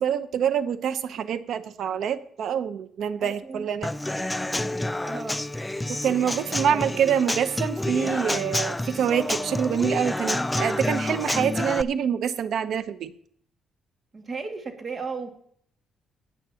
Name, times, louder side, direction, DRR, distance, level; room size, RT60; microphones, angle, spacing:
voice 1, 0.0-3.9 5.9-13.1, right 8 dB, 70° right, 12 dB, 0.8 m, -26 dB
voice 2, 3.2-3.7 5.0-5.4 5.7-5.9 6.4-7.0 14.1-15.3, right 4 dB, 40° right, 4 dB, 2.1 m, -35 dB
Human voice / Acoustic guitar / Drum, 3.8-11.8, left 1 dB, 10° left, 0.4 m, -28 dB
18.5 x 9.0 x 2.9 m, 0.62 s
cardioid pair, 90°, 0 cm